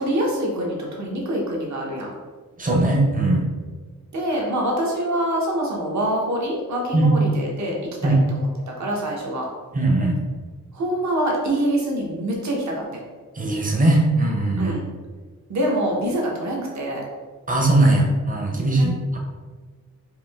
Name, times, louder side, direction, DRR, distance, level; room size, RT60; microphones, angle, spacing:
voice 1, 0.0-2.1 4.1-7.8 8.0-8.5 8.8-9.4 10.7-13.0 14.6-14.8 15.5-17.0 18.7-18.9, right 1 dB, 55° right, -2 dB, 1.1 m, -25 dB
voice 2, 2.6-3.5 6.9-7.1 8.0-8.2 9.7-10.2 13.3-14.8 17.5-19.2, right 2 dB, 25° right, 0 dB, 0.8 m, -19 dB
5.0 x 2.7 x 3.5 m, 1.4 s
wide cardioid pair, 145°, 33 cm